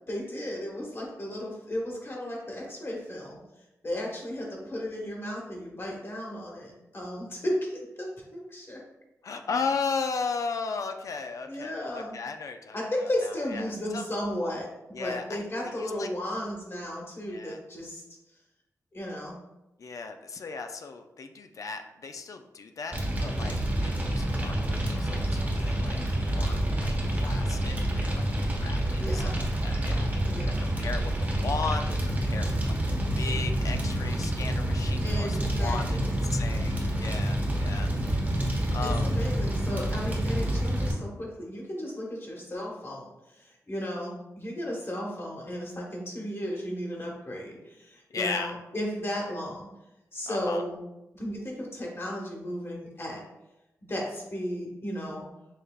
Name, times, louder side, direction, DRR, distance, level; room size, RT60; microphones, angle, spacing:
voice 1, 0.1-3.4 3.8-8.8 11.5-12.2 12.7-14.7 15.0-18.0 18.9-19.3 28.9-29.4 30.3-30.6 35.0-36.2 38.8-49.7 50.1-50.8 51.1-53.2 53.9-55.3, equal, 40° left, -2 dB, 1.3 m, -34 dB
voice 2, 9.2-14.0 14.9-15.4 15.8-16.1 17.3-17.6 19.8-28.3 28.6-29.3 29.6-32.8 33.2-36.0 36.3-37.9 38.7-39.2 48.1-48.5 50.3-50.6, left 4 dB, 65° left, 6 dB, 0.4 m, -36 dB
Fire, 22.9-40.9, right 1 dB, 25° right, 0.9 m, -28 dB
5.4 x 3.3 x 2.3 m, 0.95 s
cardioid pair, 75°, 6 cm